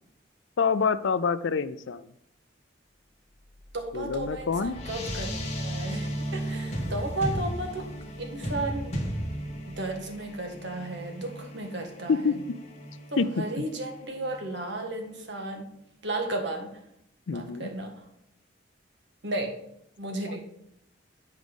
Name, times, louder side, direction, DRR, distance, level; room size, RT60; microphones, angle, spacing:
voice 1, 0.6-2.0 3.9-4.7 12.1-12.4 13.2-13.3 17.3-17.7, left 5 dB, 80° left, 14 dB, 0.4 m, -26 dB
sound 1, 3.6-14.4, equal, 35° left, 1.5 m, -35 dB
voice 2, 3.7-7.9 8.2-9.0 9.7-12.4 13.4-15.7 16.0-16.7 17.3-17.9 19.2-19.5 20.0-20.4, right 2 dB, 65° right, 3 dB, 1.5 m, -34 dB
8.2 x 5.1 x 5.2 m, 0.77 s
head